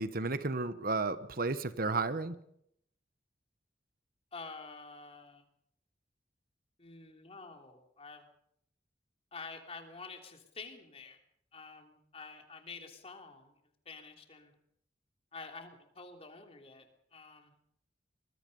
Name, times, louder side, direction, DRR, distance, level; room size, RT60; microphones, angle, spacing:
voice 1, 0.0-2.3, right 3 dB, 55° right, 13 dB, 1.1 m, -33 dB
voice 2, 4.3-5.4 6.8-8.3 9.3-11.2 11.5-13.6 13.8-14.5 15.3-17.5, left 4 dB, 35° left, 4 dB, 3.1 m, -48 dB
24.5 x 21.5 x 5.4 m, 0.71 s
head